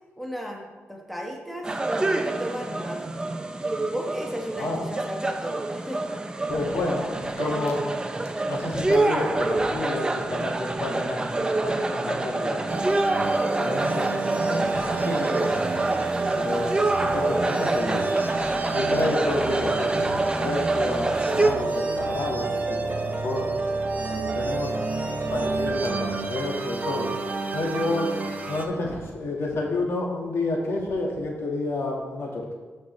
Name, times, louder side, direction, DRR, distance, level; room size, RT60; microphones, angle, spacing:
voice 1, 0.2-3.0 3.9-6.1 15.8-16.0, equal, ahead, 0 dB, 1.1 m, -35 dB
sound 1, 1.6-21.5, right 2 dB, 20° right, 0.5 m, -27 dB
voice 2, 6.5-7.8 8.5-13.3 13.6-15.7 16.4-16.7 17.0-18.1 18.7-22.5 22.8-22.9 23.2-23.5 24.1-24.7 25.3-27.1 27.5-28.1 28.5-32.5, left 2 dB, 70° left, -1 dB, 1.7 m, -30 dB
Cold wednesday, 12.7-28.6, right 3 dB, 35° right, 0.9 m, -28 dB
13.0 x 5.4 x 3.2 m, 1.4 s
wide cardioid pair, 125°, 5 cm